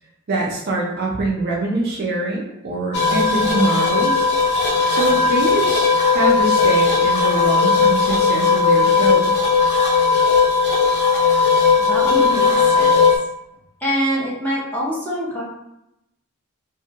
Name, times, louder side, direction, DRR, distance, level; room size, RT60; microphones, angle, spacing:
voice 1, 0.3-4.3 4.9-9.5, right 2 dB, 45° right, -2 dB, 0.4 m, -24 dB
sound 1, 2.9-13.2, left 5 dB, 50° left, 0.5 m, -17 dB
voice 2, 11.2-13.0 13.8-15.4, equal, 10° left, -7 dB, 0.7 m, -25 dB
2.6 x 2.1 x 2.8 m, 0.85 s
head